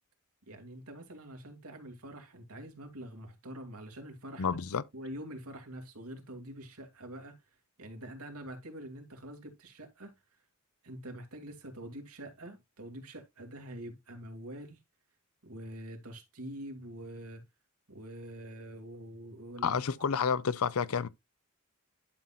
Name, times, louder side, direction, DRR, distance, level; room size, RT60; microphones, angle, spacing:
voice 1, 0.5-4.6 4.9-7.4 7.8-10.1 10.8-14.8 15.4-17.4 17.9-19.8, right 1 dB, 85° right, 2.3 m, -45 dB
voice 2, 4.4-4.8 19.6-21.1, left 6 dB, 80° left, 0.6 m, -30 dB
11.5 x 5.8 x 2.4 m
head